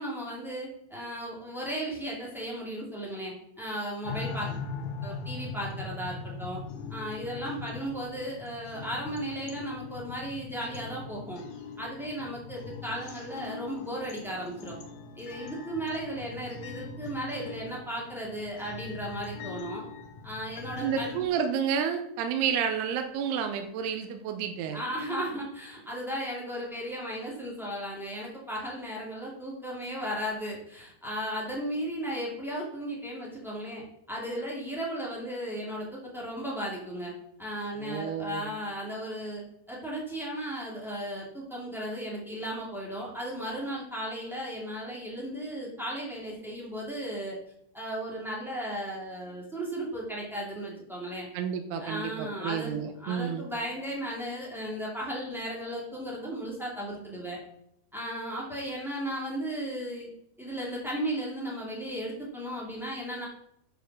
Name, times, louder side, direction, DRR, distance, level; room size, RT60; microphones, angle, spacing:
voice 1, 0.0-4.5 5.0-6.6 6.9-11.4 11.8-14.7 15.2-19.8 20.2-21.2 24.7-37.1 37.4-39.4 39.7-47.4 47.7-51.3 51.8-57.4 57.9-60.1 60.4-63.2, equal, 5° right, -5 dB, 0.4 m, -35 dB
sound 1, 4.0-21.3, left 4 dB, 70° left, 1.8 m, -41 dB
voice 2, 20.8-24.8 37.8-38.5 51.3-53.4, right 7 dB, 80° right, 6 dB, 2.6 m, -30 dB
9.1 x 5.3 x 6.0 m, 0.75 s
omnidirectional pair, 5.0 m